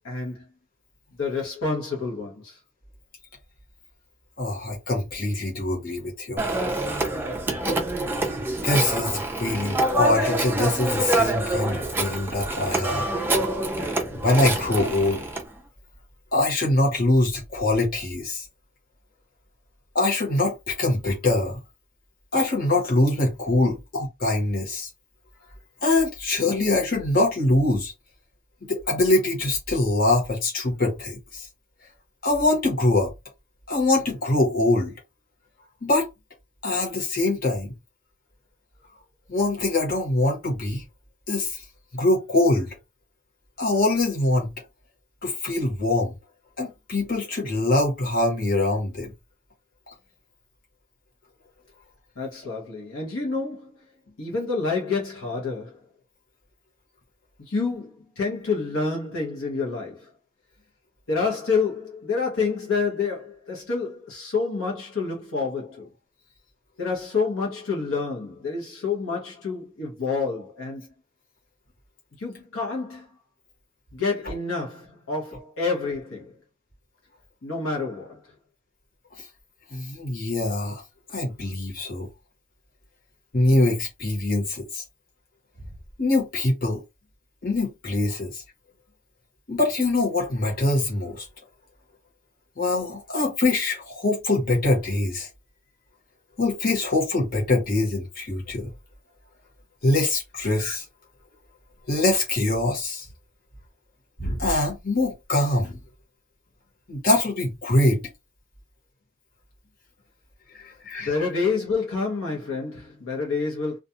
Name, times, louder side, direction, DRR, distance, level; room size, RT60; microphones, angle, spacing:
voice 1, 0.0-0.5 1.1-2.6 52.2-53.8 54.2-55.8 57.4-60.1 61.1-65.9 66.8-70.9 72.2-73.1 73.9-76.4 77.4-78.3 111.0-113.8, left 4 dB, 70° left, 0.9 m, -28 dB
voice 2, 4.4-6.4 8.6-13.1 14.1-15.2 16.3-18.5 19.9-21.6 22.3-24.9 25.8-27.9 28.7-31.5 32.2-33.1 33.7-34.9 35.8-36.1 36.6-37.7 39.3-40.8 41.3-41.6 41.9-42.8 43.6-44.5 45.2-46.1 46.6-49.1 79.7-80.8 81.1-82.1 83.3-84.8 86.0-86.8 87.4-88.4 89.5-91.3 92.6-95.3 96.4-98.7 99.8-100.8 101.9-103.0 104.2-105.8 106.9-108.0 110.6-111.1, left 2 dB, 45° left, 1.1 m, -23 dB
Telephone, 6.4-15.4, right 1 dB, 10° right, 0.4 m, -26 dB
2.4 x 2.3 x 2.7 m
head